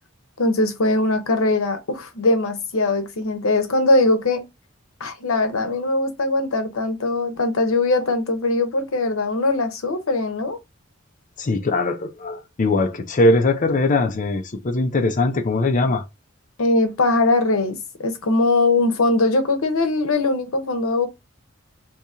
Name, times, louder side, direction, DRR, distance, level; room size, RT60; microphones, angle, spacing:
voice 1, 0.4-4.4 5.0-10.6 16.6-21.1, left 2 dB, 90° left, 0.8 m, -21 dB
voice 2, 11.4-16.0, left 2 dB, 40° left, 0.5 m, -21 dB
2.9 x 2.7 x 3.5 m
head